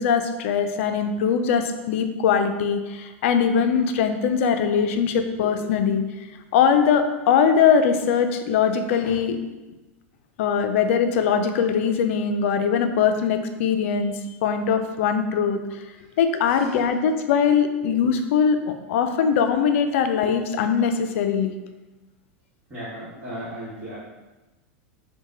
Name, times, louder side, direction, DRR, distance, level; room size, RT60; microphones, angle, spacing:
voice 1, 0.0-6.0 6.5-9.4 10.4-15.8 16.2-21.5, left 7 dB, 70° left, 7 dB, 0.4 m, -21 dB
voice 2, 16.5-16.8 22.7-24.0, equal, 25° right, -10 dB, 1.2 m, -36 dB
4.0 x 2.2 x 3.8 m, 1.1 s
hypercardioid pair, 110°, 7 cm